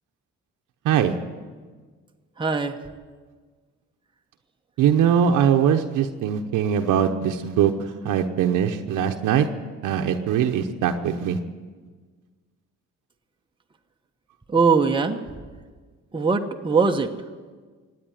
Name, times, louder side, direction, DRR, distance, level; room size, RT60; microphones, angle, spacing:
voice 1, 2.4-2.8 14.5-15.4 16.1-17.1, right 4 dB, 15° right, 3 dB, 1.0 m, -21 dB
voice 2, 4.8-7.7 8.0-9.5 9.8-11.4, right 8 dB, 85° right, 5 dB, 0.9 m, -21 dB
16.5 x 9.5 x 9.2 m, 1.5 s
cardioid pair, 90°, 30 cm